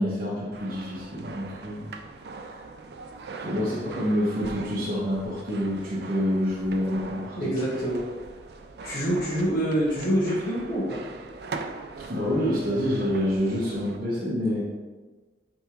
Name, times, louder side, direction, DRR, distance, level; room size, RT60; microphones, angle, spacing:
voice 1, 0.0-1.9 2.4-2.5 3.4-7.3 12.1-14.6, equal, 50° right, -8 dB, 1.2 m, -27 dB
sound 1, 0.5-14.0, right 4 dB, 65° right, 0.5 m, -41 dB
voice 2, 7.4-8.0 8.8-11.0, equal, 55° left, -11 dB, 1.5 m, -26 dB
8.7 x 3.5 x 3.1 m, 1.3 s
head